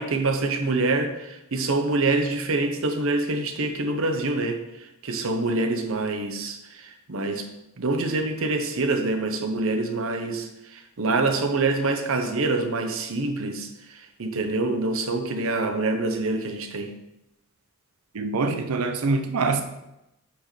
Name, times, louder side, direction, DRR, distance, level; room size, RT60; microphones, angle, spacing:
voice 1, 0.0-7.5 7.8-16.9, right 3 dB, 65° right, 0.9 m, -26 dB
voice 2, 18.1-19.6, right 3 dB, 90° right, 0.6 m, -24 dB
8.5 x 6.2 x 3.2 m
head